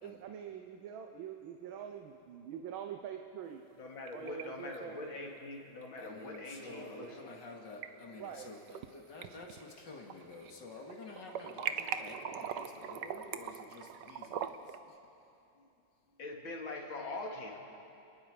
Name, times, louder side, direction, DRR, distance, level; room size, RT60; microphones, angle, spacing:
voice 1, 0.0-3.6 4.1-5.3 6.7-7.2 8.2-8.5, right 8 dB, 85° right, 5 dB, 1.7 m, -45 dB
sound 1, 3.7-4.4 4.7-4.8 6.3-6.4 7.5-7.9 8.4-8.9 9.2-10.6 10.8-14.8, right 8 dB, 65° right, 1.3 m, -41 dB
voice 2, 3.8-7.4 15.6-15.7 16.2-17.6, left 2 dB, 80° left, 0 dB, 3.0 m, -43 dB
voice 3, 6.0-8.6 8.9-14.5, left 3 dB, 60° left, 0 dB, 2.8 m, -49 dB
28.0 x 19.5 x 5.0 m, 2.7 s
omnidirectional pair, 2.2 m